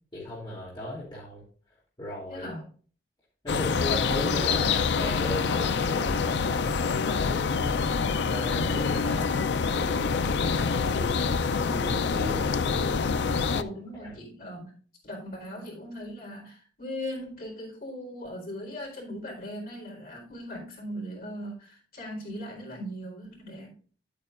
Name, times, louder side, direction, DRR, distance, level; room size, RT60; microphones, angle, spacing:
voice 1, 0.1-1.4 2.0-2.5 3.4-7.9 8.2-12.9 13.5-13.6 14.0-14.2, left 1 dB, 25° left, 2.9 m, -36 dB
voice 2, 2.3-2.7 13.5-23.7, equal, 55° left, 4.3 m, -39 dB
sound 1, 3.5-13.6, left 5 dB, 80° left, 0.5 m, -26 dB
11.0 x 8.8 x 2.5 m
head